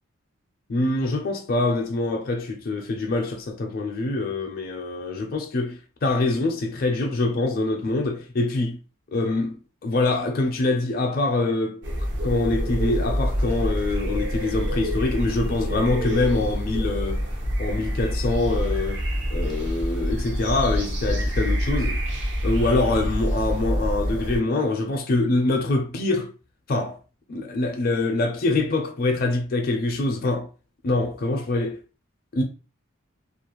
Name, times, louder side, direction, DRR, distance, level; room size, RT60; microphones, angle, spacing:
voice 1, 0.7-8.8 9.1-11.8 12.2-17.2 17.6-19.0 19.3-22.0 22.4-26.3 26.7-27.0 27.3-30.5 30.8-31.8 32.3-32.4, left 2 dB, 45° left, 0.4 m, -24 dB
sound 1, 11.8-24.4, equal, 60° right, 0.7 m, -26 dB
2.4 x 2.1 x 2.9 m
head